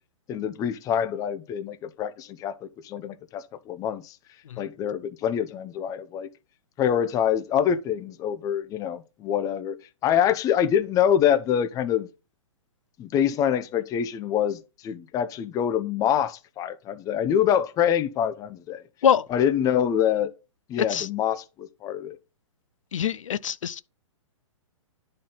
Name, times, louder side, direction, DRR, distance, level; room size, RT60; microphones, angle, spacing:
voice 1, 0.3-2.5 2.8-4.1 4.6-6.3 6.8-9.8 10.0-12.1 13.0-18.8 19.3-20.3 20.7-22.2, left 9 dB, 20° left, 0.6 m, -25 dB
voice 2, 22.9-23.8, left 8 dB, 75° left, 0.5 m, -24 dB
9.9 x 4.4 x 3.8 m
hypercardioid pair, 125°, 17 cm